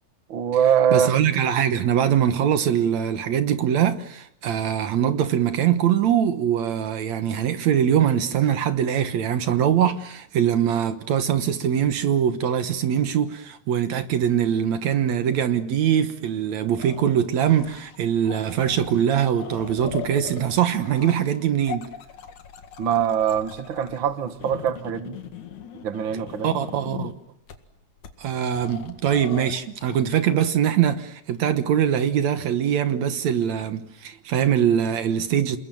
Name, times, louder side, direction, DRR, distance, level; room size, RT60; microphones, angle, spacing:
voice 1, 0.3-1.1 22.8-25.2 25.8-26.5, right 8 dB, 45° right, 2.1 m, -23 dB
voice 2, 0.9-21.9 26.4-27.1 28.2-35.6, right 9 dB, 70° right, 2.4 m, -22 dB
sound 1, 16.8-18.0 18.2-27.1 27.5-27.6 28.0-28.1 28.5-30.0, left 8 dB, 80° left, 3.4 m, -39 dB
29.0 x 21.0 x 9.2 m
omnidirectional pair, 3.4 m